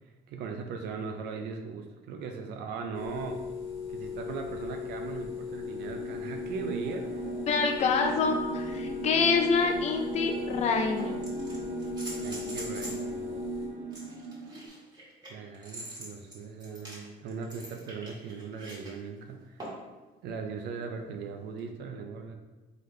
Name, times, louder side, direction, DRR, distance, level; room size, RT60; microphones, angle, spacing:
voice 1, 0.3-3.4 3.9-7.3 12.2-13.3 15.3-19.6 20.2-22.3, right 5 dB, 80° right, 4 dB, 0.5 m, -39 dB
sound 1, 2.9-13.7, left 6 dB, 65° left, 1.2 m, -38 dB
sound 2, 5.5-14.7, right 5 dB, 55° right, 0.9 m, -38 dB
voice 2, 7.5-11.2, left 5 dB, 40° left, 4 dB, 0.5 m, -26 dB
sound 3, 11.0-13.1 13.9-18.9 19.6-19.9 21.6-21.7, right 1 dB, 25° right, 1.4 m, -43 dB
3.7 x 3.4 x 3.2 m, 1.2 s
cardioid pair, 110°, 17 cm